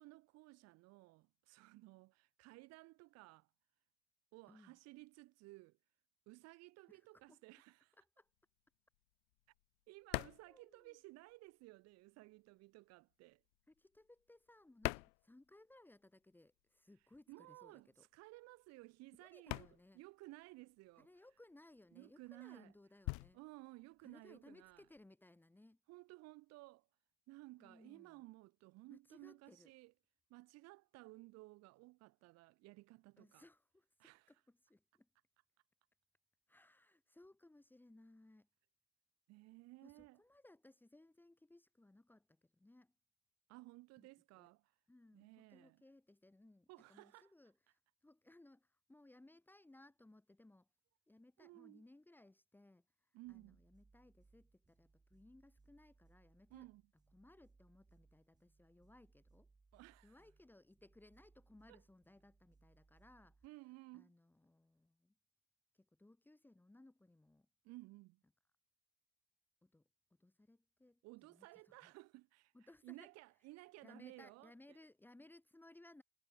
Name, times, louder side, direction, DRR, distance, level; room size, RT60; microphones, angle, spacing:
voice 1, 0.0-3.5 4.3-5.8 6.3-8.0 9.9-13.4 17.3-21.1 21.9-22.7 23.3-24.8 25.9-26.9 27.3-29.9 30.3-33.4 34.0-34.3 39.3-40.2 43.5-44.7 45.1-45.8 46.7-47.3 51.4-51.8 53.1-53.6 56.5-56.8 59.7-60.2 61.7-61.8 63.4-64.1 67.6-68.2 71.0-72.5 72.8-74.8, right 21 dB, 60° right, 1.3 m, -57 dB
voice 2, 4.5-4.8 6.9-7.4 8.0-8.3 10.5-11.0 13.7-18.1 19.2-20.0 21.0-23.4 24.0-25.8 27.6-28.3 28.9-29.7 33.2-35.1 36.5-38.5 39.8-42.9 44.0-44.1 44.4-44.5 44.9-50.7 51.1-56.7 57.1-59.5 60.0-63.4 63.9-65.1 65.7-67.5 69.6-69.9 70.2-71.0 71.3-71.9 72.5-73.1 73.8-76.0, left 2 dB, 5° left, 2.3 m, -64 dB
sound 1, 8.3-11.6 11.9-16.0 16.3-25.1, left 33 dB, 70° left, 0.8 m, -47 dB
sound 2, 53.2-63.5, right 3 dB, 15° right, 5.0 m, -71 dB
supercardioid pair, 125°, 29 cm